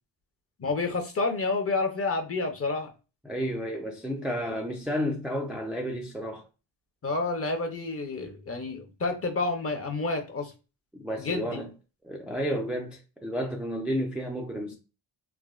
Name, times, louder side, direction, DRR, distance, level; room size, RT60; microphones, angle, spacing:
voice 1, 0.6-2.9 7.0-10.5 11.2-11.6, left 3 dB, 30° left, 0.6 m, -29 dB
voice 2, 3.2-6.4 10.9-11.7 12.0-14.8, equal, 5° right, 0.3 m, -31 dB
3.3 x 2.1 x 2.3 m
cardioid pair, 100°, 46 cm